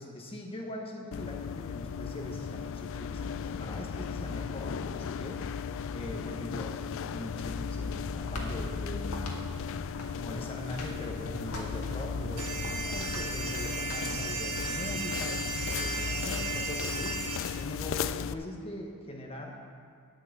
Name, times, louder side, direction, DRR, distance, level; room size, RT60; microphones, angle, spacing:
voice 1, 0.0-5.6 5.9-9.4 10.2-19.6, left 1 dB, 25° left, 0 dB, 1.0 m, -41 dB
sound 1, 1.1-18.3, left 6 dB, 60° left, 0.3 m, -36 dB
sound 2, 7.3-14.7, left 1 dB, 85° left, 1.7 m, -43 dB
sound 3, 12.4-17.4, right 4 dB, 80° right, 1.0 m, -35 dB
10.5 x 6.0 x 7.8 m, 2.3 s
head